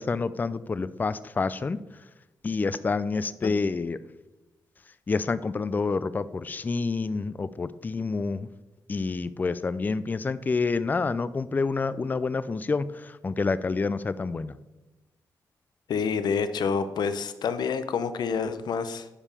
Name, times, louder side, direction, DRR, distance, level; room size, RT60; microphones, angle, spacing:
voice 1, 0.0-1.8 2.4-4.0 5.1-8.5 8.9-14.5, left 4 dB, 25° left, 16 dB, 0.4 m, -28 dB
voice 2, 15.9-19.1, left 6 dB, 80° left, 12 dB, 0.7 m, -28 dB
9.8 x 5.5 x 6.6 m, 1.0 s
wide cardioid pair, 125°, 7 cm